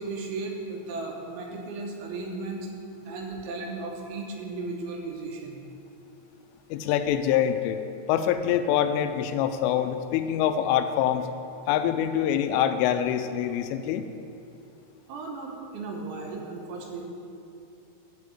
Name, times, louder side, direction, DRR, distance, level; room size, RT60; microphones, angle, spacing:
voice 1, 0.0-2.7 3.1-5.6 15.1-17.1, right 3 dB, 75° right, 0 dB, 3.4 m, -35 dB
voice 2, 6.7-7.8 8.1-11.3 11.7-14.1, left 10 dB, 85° left, 9 dB, 3.1 m, -25 dB
12.0 x 5.0 x 8.3 m, 2.7 s
omnidirectional pair, 5.6 m